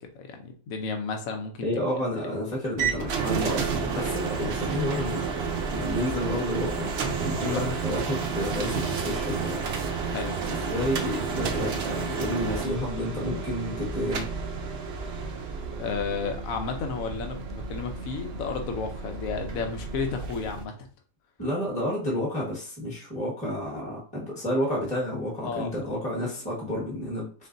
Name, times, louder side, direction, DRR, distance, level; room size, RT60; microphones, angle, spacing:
voice 1, 0.0-1.7 2.2-2.3 7.3-7.7 10.1-10.3 15.8-20.8 25.4-26.0, left 5 dB, 75° left, 5 dB, 1.2 m, -33 dB
voice 2, 1.6-9.6 10.4-14.3 21.4-27.5, left 1 dB, 5° left, -3 dB, 1.2 m, -30 dB
sound 1, 2.8-20.6, right 5 dB, 55° right, 0.8 m, -31 dB
4.2 x 3.7 x 2.6 m, 0.41 s
omnidirectional pair, 1.5 m